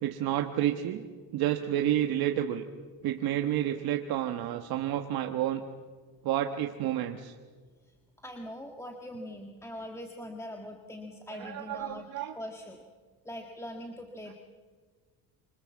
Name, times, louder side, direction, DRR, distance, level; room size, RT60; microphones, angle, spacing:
voice 1, 0.0-1.1 1.3-2.7 3.0-5.6 6.2-7.3 11.3-12.3, right 12 dB, 75° right, 4 dB, 1.4 m, -30 dB
voice 2, 8.2-12.1 12.3-12.8 13.2-14.3, left 1 dB, 5° left, 3 dB, 1.6 m, -42 dB
26.0 x 25.0 x 7.3 m, 1.5 s
cardioid pair, 135°, 37 cm